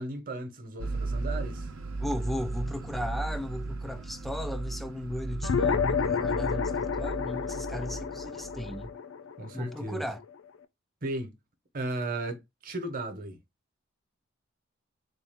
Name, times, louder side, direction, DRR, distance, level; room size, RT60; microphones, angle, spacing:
voice 1, 0.0-1.7 9.4-10.1 11.0-11.3 11.7-13.4, right 2 dB, 45° right, 0.9 m, -35 dB
sound 1, 0.8-8.9, right 3 dB, 75° right, 0.7 m, -36 dB
voice 2, 2.0-8.9 9.5-10.2, left 1 dB, ahead, 0.3 m, -36 dB
sound 2, 5.4-10.2, left 6 dB, 65° left, 0.5 m, -30 dB
4.0 x 2.4 x 3.5 m
head